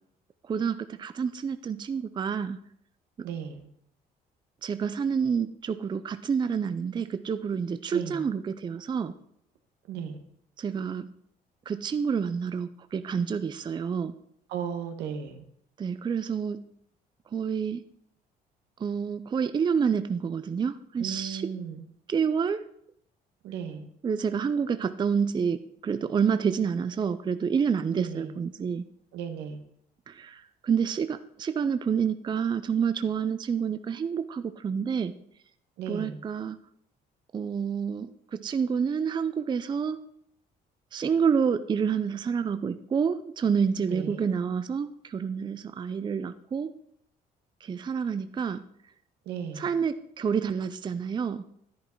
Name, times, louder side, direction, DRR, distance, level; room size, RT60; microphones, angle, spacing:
voice 1, 0.5-2.6 3.2-3.3 4.6-9.1 10.6-11.1 11.7-14.1 15.8-16.6 17.3-17.8 18.8-21.4 22.1-22.6 24.0-28.8 30.1-35.1 35.9-36.6 37.3-40.0 40.9-46.7 47.6-48.6 49.6-51.4, right 6 dB, 25° right, 11 dB, 0.5 m, -28 dB
voice 2, 3.2-3.7 7.9-8.2 9.9-10.2 14.5-15.4 21.0-21.8 23.4-23.9 27.9-28.3 29.1-29.6 35.8-36.2 43.9-44.3 49.2-49.7, right 7 dB, 80° right, 6 dB, 1.5 m, -36 dB
11.0 x 10.5 x 4.5 m, 0.70 s
cardioid pair, 110°, 17 cm